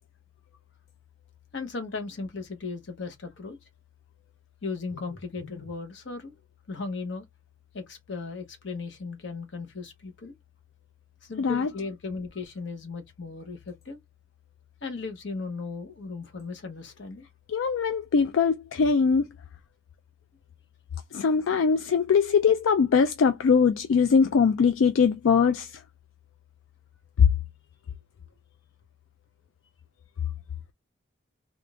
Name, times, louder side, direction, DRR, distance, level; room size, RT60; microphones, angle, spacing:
voice 1, 1.5-3.6 4.6-6.3 6.7-7.2 7.7-10.3 11.2-14.0 14.8-17.3, left 4 dB, 70° left, 0.9 m, -36 dB
voice 2, 11.4-11.7 17.5-19.3 21.1-25.7, left 6 dB, 85° left, 0.4 m, -22 dB
3.6 x 2.4 x 2.3 m
head